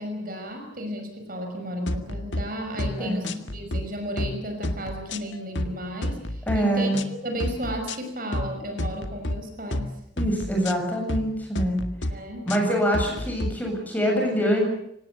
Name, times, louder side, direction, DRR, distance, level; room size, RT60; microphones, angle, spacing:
voice 1, 0.0-6.9 7.2-10.0 12.1-12.5, equal, 45° right, 4 dB, 5.5 m, -33 dB
sound 1, 1.9-2.4 2.8-3.0 3.2-3.8 4.2-4.4 4.6-5.7 6.0-6.6 6.9-7.1 7.4-8.0 8.3-8.5 8.8-9.4 9.7-9.9 10.2-10.7 11.1-11.3 11.5-12.1 12.5-13.5, left 1 dB, 75° left, 1.9 m, -29 dB
voice 2, 6.5-7.0 10.2-11.8 12.5-14.7, equal, 10° left, 1 dB, 7.5 m, -24 dB
25.5 x 18.5 x 8.2 m, 0.77 s
head